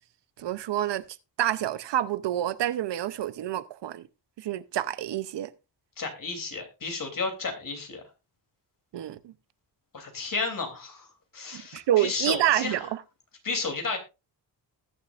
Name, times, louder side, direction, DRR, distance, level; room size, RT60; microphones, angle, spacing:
voice 1, 0.4-1.0 1.4-4.1 4.4-5.5 8.9-9.3 11.5-13.0, right 12 dB, 70° right, 0.7 m, -28 dB
voice 2, 6.0-8.0 9.9-11.1 11.3-12.8 13.4-14.0, left 4 dB, 50° left, 3.1 m, -32 dB
20.0 x 6.7 x 2.5 m
cardioid pair, 105°, 43 cm